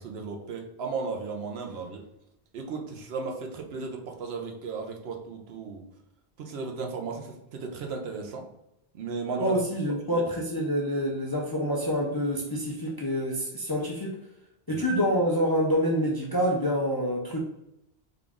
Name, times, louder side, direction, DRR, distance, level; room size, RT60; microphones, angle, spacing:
voice 1, 0.0-2.0 2.5-5.8 6.4-8.4 8.9-9.5 10.1-10.2 14.7-14.9, right 4 dB, 75° right, 2 dB, 0.9 m, -35 dB
voice 2, 9.4-14.2 14.7-17.4, equal, 35° left, -2 dB, 0.4 m, -27 dB
3.8 x 2.4 x 3.5 m, 0.83 s
omnidirectional pair, 1.1 m